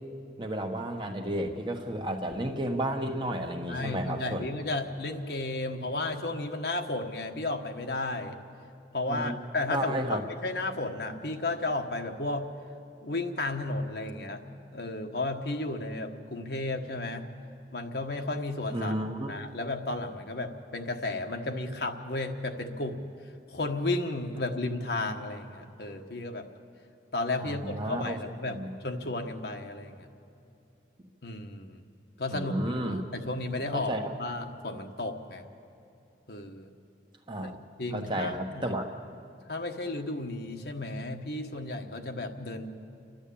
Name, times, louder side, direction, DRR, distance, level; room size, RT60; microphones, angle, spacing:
voice 1, 0.4-4.4 9.1-9.4 9.7-10.2 18.7-19.3 27.4-28.2 28.5-28.7 32.3-33.0 33.7-34.1 37.3-37.5 37.9-38.9, right 1 dB, 25° right, 3 dB, 1.3 m, -32 dB
voice 2, 3.7-8.4 8.9-12.5 13.0-14.4 14.7-17.3 17.7-23.0 23.5-26.5 27.1-28.6 28.8-30.1 31.2-31.8 32.2-32.5 32.9-33.9 34.2-35.4 36.3-36.7 37.4-37.5 37.8-38.7 39.5-42.8, left 2 dB, 65° left, 4 dB, 1.4 m, -33 dB
30.0 x 12.0 x 8.6 m, 2.8 s
head